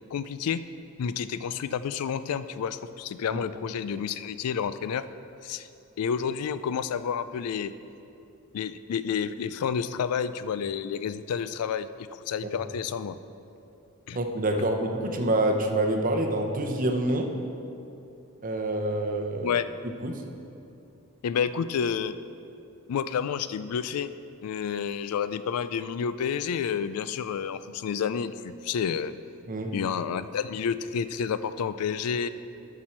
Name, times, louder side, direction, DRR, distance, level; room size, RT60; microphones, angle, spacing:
voice 1, 0.1-0.6 1.0-5.0 5.4-5.7 6.0-7.7 8.5-13.2 14.1-14.2 19.4-19.7 21.2-22.1 22.9-24.1 24.4-29.1 29.7-32.3, left 7 dB, 90° left, 14 dB, 0.3 m, -30 dB
voice 2, 14.1-17.3 18.4-19.6 20.0-20.2 29.5-29.7, right 1 dB, 40° right, 4 dB, 0.8 m, -27 dB
11.5 x 6.2 x 4.4 m, 2.7 s
head